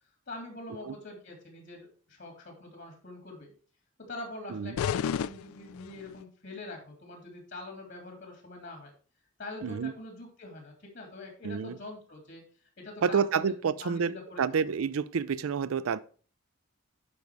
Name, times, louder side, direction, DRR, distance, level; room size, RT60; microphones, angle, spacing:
voice 1, 0.3-3.5 4.0-8.9 9.4-12.4 12.8-14.4, left 2 dB, 55° left, 2.6 m, -44 dB
sound 1, 4.8-6.2, left 8 dB, 85° left, 0.3 m, -32 dB
voice 2, 9.6-9.9 11.4-11.8 13.0-14.1 14.4-16.0, right 6 dB, 80° right, 0.4 m, -29 dB
10.5 x 5.3 x 4.7 m
head